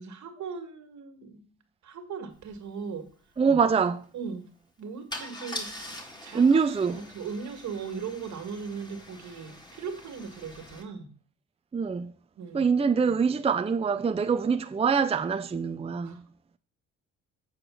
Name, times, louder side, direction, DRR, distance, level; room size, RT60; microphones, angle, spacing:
voice 1, 0.0-1.6 1.8-3.1 4.1-4.5 4.8-5.7 6.2-6.6 6.9-11.1 12.4-12.7 16.0-16.2, right 6 dB, 70° right, 2.0 m, -38 dB
Car / Engine starting / Idling, 2.5-2.6 2.9-3.1 5.1-10.8, left 1 dB, 15° left, 2.1 m, -43 dB
voice 2, 3.4-4.1 6.3-7.0 11.7-12.1 12.5-16.2, right 5 dB, 20° right, 0.6 m, -24 dB
8.1 x 4.8 x 6.3 m
cardioid pair, 90°, 30 cm